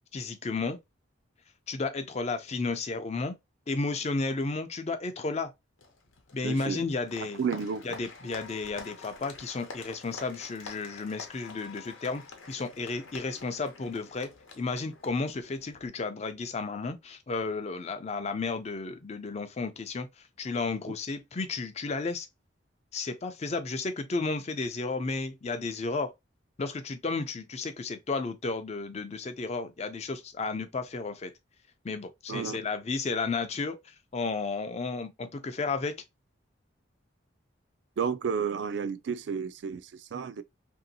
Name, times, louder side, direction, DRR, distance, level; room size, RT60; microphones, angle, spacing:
voice 1, 0.1-0.8 1.7-3.3 3.7-5.5 6.3-7.4 7.8-14.3 14.6-20.1 20.4-22.3 22.9-26.1 26.6-31.3 31.8-36.0, left 3 dB, 35° left, 0.4 m, -33 dB
Applause, 5.8-15.9, left 4 dB, 90° left, 0.9 m, -48 dB
voice 2, 6.4-6.8 7.4-7.9 32.3-32.6 38.0-40.4, right 6 dB, 65° right, 0.3 m, -32 dB
2.9 x 2.7 x 2.7 m
head